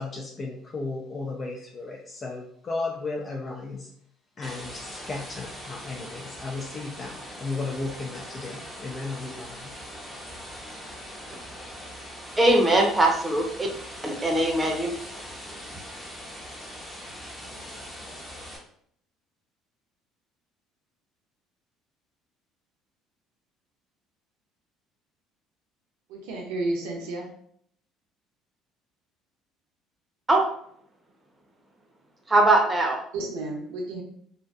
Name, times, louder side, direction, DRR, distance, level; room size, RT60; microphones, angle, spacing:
voice 1, 0.0-3.9 4.4-9.7, left 3 dB, 35° left, 0 dB, 0.4 m, -35 dB
sound 1, 4.4-18.6, equal, 10° left, 0.8 m, -41 dB
voice 2, 12.4-13.7 14.0-14.9 30.3-30.4 32.3-33.0, right 2 dB, 20° right, 1 dB, 0.7 m, -21 dB
voice 3, 26.1-27.3 33.1-34.0, right 2 dB, 75° right, 0 dB, 0.6 m, -31 dB
2.5 x 2.2 x 2.3 m, 0.66 s
hypercardioid pair, 60°, 0 cm